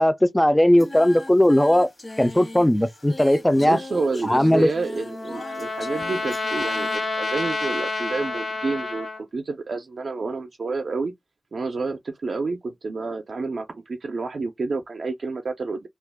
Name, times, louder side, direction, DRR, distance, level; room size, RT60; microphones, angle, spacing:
voice 1, 0.0-1.9 2.2-3.8 4.2-4.7, left 1 dB, 10° left, 0.3 m, -18 dB
Singing, 0.8-7.0, left 2 dB, 55° left, 1.0 m, -39 dB
voice 2, 3.6-11.1 11.5-15.9, right 3 dB, 80° right, 0.3 m, -29 dB
Trumpet, 4.5-9.2, left 3 dB, 75° left, 0.7 m, -29 dB
2.3 x 2.1 x 3.3 m
wide cardioid pair, 75°, 0 cm